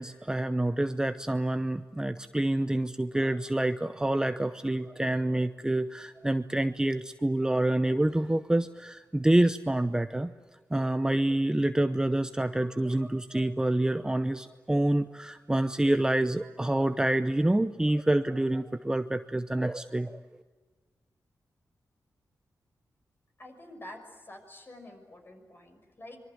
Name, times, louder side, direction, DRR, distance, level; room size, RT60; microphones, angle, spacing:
voice 1, 0.0-10.3 10.7-20.2, right 1 dB, 10° right, 10 dB, 0.7 m, -27 dB
voice 2, 23.4-26.2, left 1 dB, 35° left, 4 dB, 6.2 m, -48 dB
25.5 x 23.0 x 9.2 m, 1.4 s
wide cardioid pair, 115°, 7 cm